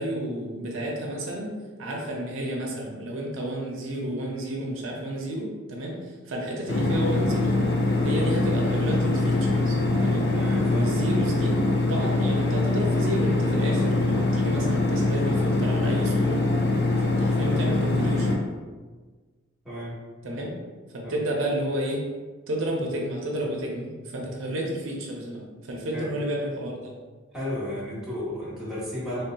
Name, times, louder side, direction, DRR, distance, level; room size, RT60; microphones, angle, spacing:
voice 1, 0.0-7.6 8.0-10.3 10.7-11.6 11.9-16.5 17.0-18.3 20.2-20.6 20.9-22.1 22.5-26.9, right 1 dB, 75° right, -1 dB, 0.5 m, -31 dB
sound 1, 6.7-18.4, left 2 dB, 55° left, 0.4 m, -23 dB
voice 2, 10.3-10.9 19.6-19.9 21.0-21.1 25.9-26.1 27.3-29.2, left 1 dB, ahead, -10 dB, 0.9 m, -33 dB
3.4 x 2.6 x 2.2 m, 1.4 s
head